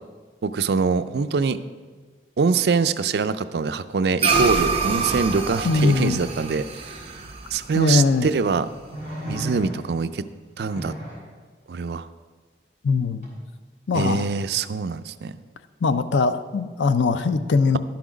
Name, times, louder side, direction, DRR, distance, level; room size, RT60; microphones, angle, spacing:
voice 1, 0.4-1.6 2.4-6.6 7.5-8.7 9.3-10.3 10.6-10.9 11.7-12.1 13.9-15.3, right 5 dB, 65° right, 12 dB, 0.4 m, -24 dB
sound 1, 4.2-8.8, right 4 dB, 30° right, 0.9 m, -26 dB
voice 2, 5.6-6.2 7.7-8.3 12.8-13.2 13.9-14.3 15.8-17.8, left 4 dB, 90° left, 11 dB, 0.5 m, -21 dB
sound 2, 7.6-7.7 8.9-10.1 10.6-11.3 13.2-13.4, equal, 45° left, 2.7 m, -34 dB
11.5 x 6.0 x 5.0 m, 1.4 s
head